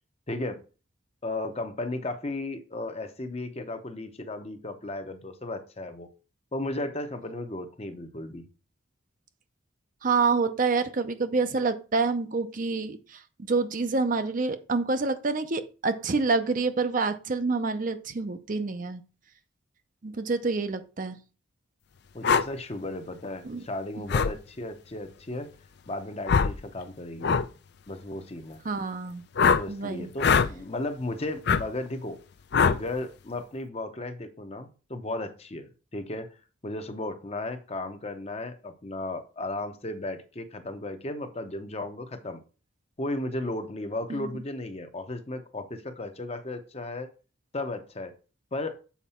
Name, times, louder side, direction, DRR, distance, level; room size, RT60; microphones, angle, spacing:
voice 1, 0.3-0.6 1.2-6.1 6.5-8.5 22.1-25.5 25.9-27.5 27.9-28.6 29.6-32.2 32.6-36.3 36.6-42.4 43.0-47.1 47.5-48.1 48.5-48.8, left 2 dB, 30° left, 0.8 m, -35 dB
voice 2, 10.0-13.2 13.5-19.0 20.0-21.2 23.4-23.6 28.6-29.2 29.7-30.1 44.1-44.3, right 4 dB, 40° right, 0.5 m, -27 dB
sound 1, 22.2-22.5 24.1-24.3 26.3-26.6 27.2-27.5 29.4-29.6 30.2-30.5 31.5-31.6 32.5-32.8, left 5 dB, 55° left, 0.4 m, -21 dB
7.2 x 4.6 x 4.2 m
head